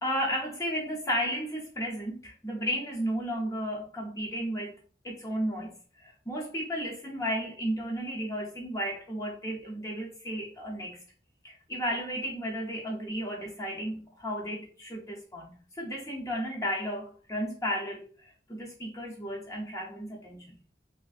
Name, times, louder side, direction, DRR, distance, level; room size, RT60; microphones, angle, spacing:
voice 1, 0.0-4.8 5.0-11.0 11.4-20.5, equal, 20° left, 0.5 m, -33 dB
3.1 x 2.4 x 2.4 m
head